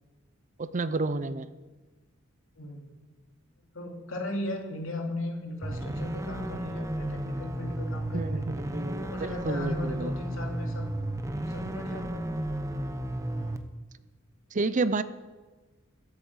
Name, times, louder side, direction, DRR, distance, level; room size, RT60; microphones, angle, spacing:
voice 1, 0.6-1.5 8.1-10.1 14.5-15.0, right 3 dB, 40° right, 14 dB, 0.5 m, -30 dB
voice 2, 2.6-2.9 3.7-8.4 9.0-10.9 11.5-12.4, left 2 dB, 80° left, 2 dB, 2.6 m, -37 dB
sound 1, 5.6-13.6, right 1 dB, 15° right, 0.9 m, -33 dB
13.5 x 8.2 x 8.0 m, 1.2 s
head